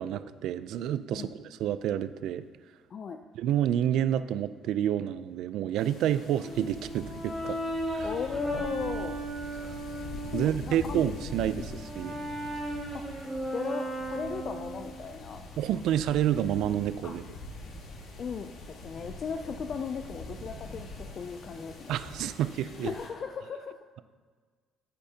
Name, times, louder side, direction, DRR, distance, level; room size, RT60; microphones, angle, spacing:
voice 1, 0.0-1.3 1.6-2.4 3.4-7.6 7.9-8.1 9.6-9.7 10.3-12.1 15.6-17.2 21.9-22.9, right 10 dB, 65° right, 13 dB, 0.4 m, -29 dB
sound 1, 5.8-23.1, left 1 dB, 60° left, 1.5 m, -44 dB
Brass instrument, 6.4-10.4 10.9-15.0, right 1 dB, 5° right, 2.1 m, -36 dB
voice 2, 8.0-9.1 10.3-11.0 11.6-11.7 12.9-13.0 13.5-15.6 17.0-17.1 18.2-21.9 22.7-23.8, left 5 dB, 35° left, 6 dB, 0.4 m, -36 dB
10.0 x 8.4 x 2.8 m, 1.5 s
cardioid pair, 155°, 0 cm